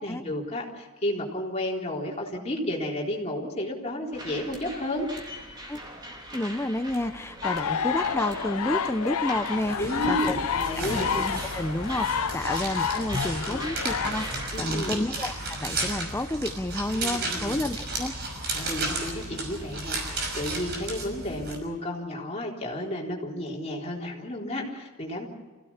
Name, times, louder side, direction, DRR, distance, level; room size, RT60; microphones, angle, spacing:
voice 1, 0.0-5.1 9.8-11.1 12.4-12.6 13.2-13.6 14.5-15.0 17.0-17.6 18.5-25.3, left 1 dB, 30° left, -2 dB, 3.8 m, -32 dB
sound 1, 4.1-14.6, right 1 dB, 20° right, 3.4 m, -42 dB
voice 2, 6.3-10.4 10.8-18.2, left 1 dB, 10° left, 9 dB, 0.6 m, -30 dB
sound 2, 7.4-14.1, left 7 dB, 80° left, 0.6 m, -30 dB
sound 3, 9.5-21.6, right 2 dB, 45° right, 5.9 m, -33 dB
27.0 x 16.5 x 7.3 m, 1.3 s
head